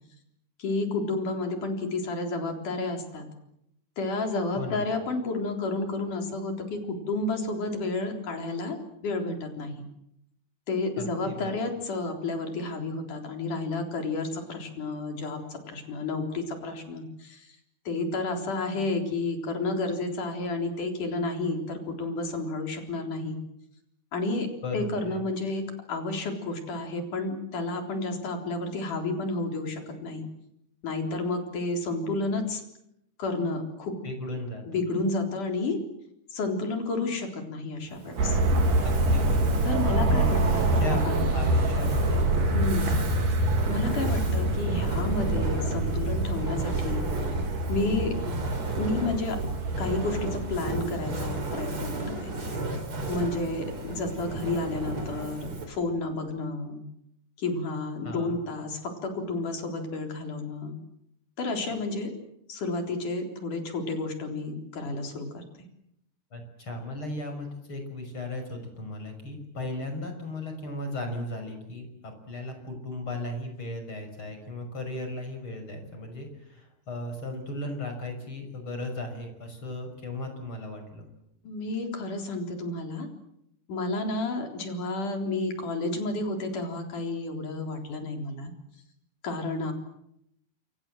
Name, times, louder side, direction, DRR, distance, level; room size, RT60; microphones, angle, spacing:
voice 1, 0.6-3.3 4.0-8.8 9.0-9.9 10.7-17.5 17.9-23.4 24.1-30.3 30.8-32.6 33.2-34.0 34.7-35.8 36.3-38.4 39.6-41.3 42.5-42.9 43.7-47.1 47.7-48.2 48.8-49.4 49.8-52.3 53.1-56.8 57.4-60.7 61.4-62.1 62.5-65.4 81.4-83.1 83.7-88.5 89.2-89.7, left 2 dB, 70° left, 4 dB, 5.3 m, -31 dB
voice 2, 11.0-11.5 24.6-25.2 34.0-34.8 38.8-41.1 41.3-42.2 42.8-43.1 53.9-54.0 58.0-58.4 66.3-81.1, left 1 dB, 40° left, 6 dB, 6.7 m, -36 dB
Fire, 37.9-55.8, right 2 dB, 40° right, 4.6 m, -35 dB
sound 1, 38.2-53.4 54.0-54.1, right 2 dB, 80° right, 4.7 m, -26 dB
28.0 x 25.0 x 7.7 m, 0.79 s
omnidirectional pair, 3.7 m